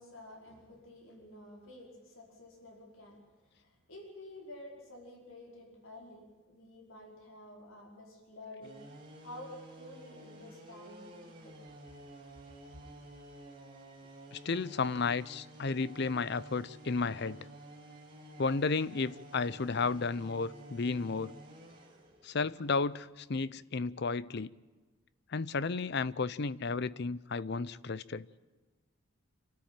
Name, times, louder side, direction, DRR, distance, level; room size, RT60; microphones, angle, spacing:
voice 1, 0.0-3.2 3.5-8.8 9.2-11.6, left 1 dB, 70° left, 5.0 m, -50 dB
sound 1, 8.6-23.1, right 1 dB, 25° right, 3.9 m, -52 dB
voice 2, 14.3-17.4 18.4-21.3 22.2-24.5 25.3-28.3, left 4 dB, 50° left, 0.6 m, -33 dB
26.5 x 13.5 x 9.0 m
head